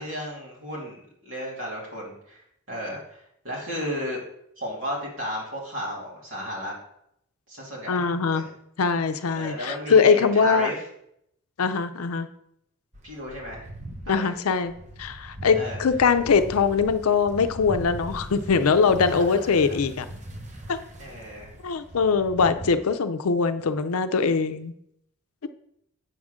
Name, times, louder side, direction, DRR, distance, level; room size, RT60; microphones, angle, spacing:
voice 1, 0.0-3.2 3.4-4.2 4.6-6.7 7.5-8.0 8.3-8.5 9.3-10.8 13.0-13.7 14.1-14.3 15.5-15.8 19.1-19.8 21.0-21.5, equal, 65° right, -4 dB, 2.8 m, -34 dB
voice 2, 7.9-8.5 8.8-10.7 11.6-12.3 14.1-14.7 15.0-20.1 20.7-20.8 21.6-24.7 25.4-25.5, left 5 dB, 90° left, 10 dB, 0.5 m, -22 dB
sound 1, 12.9-22.7, right 1 dB, 35° right, 0.8 m, -39 dB
7.9 x 3.6 x 6.4 m, 0.75 s
head